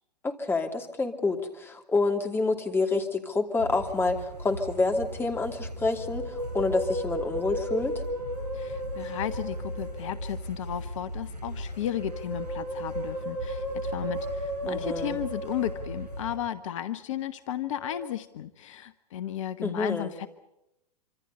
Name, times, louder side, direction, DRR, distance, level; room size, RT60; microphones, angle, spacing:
voice 1, 0.2-7.9 14.7-15.2 19.6-20.1, left 3 dB, 10° left, 3 dB, 2.9 m, -28 dB
sound 1, 3.6-16.4, equal, 80° right, 7.8 m, -38 dB
Musical instrument, 5.8-10.4 11.7-16.5 17.7-18.1, right 1 dB, 50° right, 6.1 m, -36 dB
voice 2, 8.5-20.3, left 11 dB, 50° left, 12 dB, 1.0 m, -34 dB
26.5 x 26.0 x 5.5 m, 0.87 s
figure-of-eight pair, 105°, 21 cm